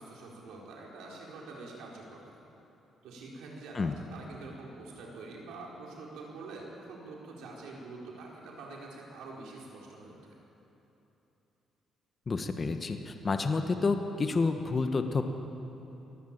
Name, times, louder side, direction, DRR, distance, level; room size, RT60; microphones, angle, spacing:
voice 1, 0.0-2.4 3.0-10.4, right 3 dB, 90° right, -2 dB, 4.7 m, -46 dB
voice 2, 12.3-15.2, left 4 dB, 35° left, 6 dB, 1.5 m, -29 dB
22.5 x 14.5 x 8.9 m, 3.0 s
cardioid pair, 90°, 0 cm